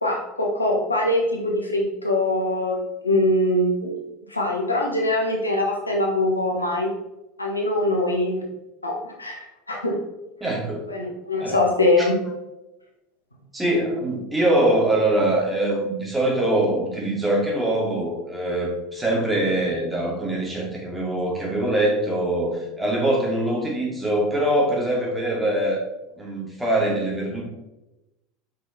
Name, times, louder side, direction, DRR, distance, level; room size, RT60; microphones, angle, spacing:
voice 1, 0.0-3.9 4.3-6.9 7.4-8.5 8.8-10.0 10.9-12.2, left 1 dB, 85° left, 0 dB, 1.2 m, -23 dB
voice 2, 10.4-10.9 11.4-11.6 13.5-25.8 26.2-27.4, right 1 dB, 10° right, -3 dB, 2.4 m, -23 dB
5.8 x 5.5 x 4.0 m, 0.96 s
figure-of-eight pair, 75°, 0 cm